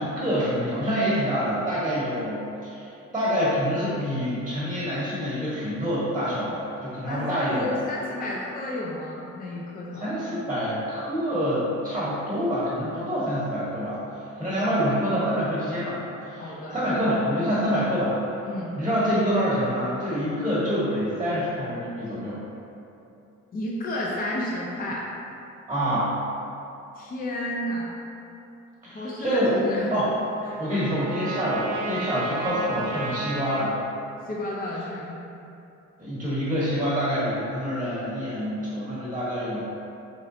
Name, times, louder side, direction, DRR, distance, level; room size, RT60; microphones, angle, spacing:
voice 1, 0.0-7.8 9.9-14.0 14.4-18.2 18.7-22.4 25.7-26.1 28.8-29.6 29.9-30.1 30.6-33.8 36.0-39.6, equal, 15° right, -8 dB, 1.0 m, -26 dB
voice 2, 7.1-10.1 14.4-14.7 16.4-16.8 18.5-18.7 23.5-25.1 27.0-28.0 28.9-30.0 30.5-30.6 34.3-35.2, left 1 dB, 30° left, -4 dB, 0.5 m, -32 dB
Trumpet, 29.4-33.7, right 3 dB, 75° right, 0.5 m, -34 dB
3.7 x 3.2 x 2.6 m, 2.8 s
cardioid pair, 90°, 30 cm